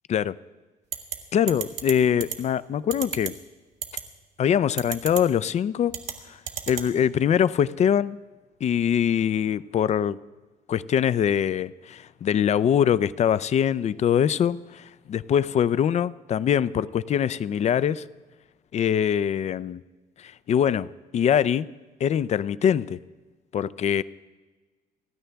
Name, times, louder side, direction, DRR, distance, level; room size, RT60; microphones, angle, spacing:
sound 1, 0.9-1.2 1.5-1.9 2.2-2.4 2.9-3.3 3.8-4.0 4.8-5.2 5.9-6.1 6.5-6.9, right 10 dB, 85° right, 1.8 m, -30 dB
voice 1, 1.3-3.3 4.4-5.9 6.3-6.4 6.7-8.2 8.6-10.2 10.7-18.0 18.7-19.8 20.2-21.7 22.0-23.0 23.5-24.0, left 9 dB, 40° left, 0.4 m, -23 dB
29.5 x 9.9 x 3.4 m
cardioid pair, 110°, 17 cm